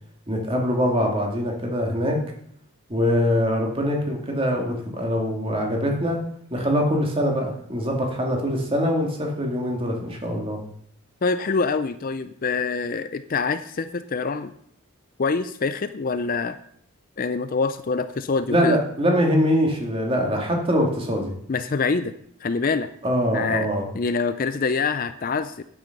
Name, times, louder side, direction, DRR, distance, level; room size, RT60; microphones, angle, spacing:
voice 1, 0.3-2.2 2.9-6.2 6.5-10.6 18.5-21.4 23.0-23.9, equal, 25° right, 1 dB, 2.2 m, -23 dB
voice 2, 11.2-14.5 15.2-16.6 17.2-18.8 21.5-22.1 22.4-22.9 23.3-23.7 23.9-25.6, left 4 dB, 40° left, 12 dB, 0.4 m, -25 dB
9.7 x 7.9 x 5.9 m, 0.67 s
head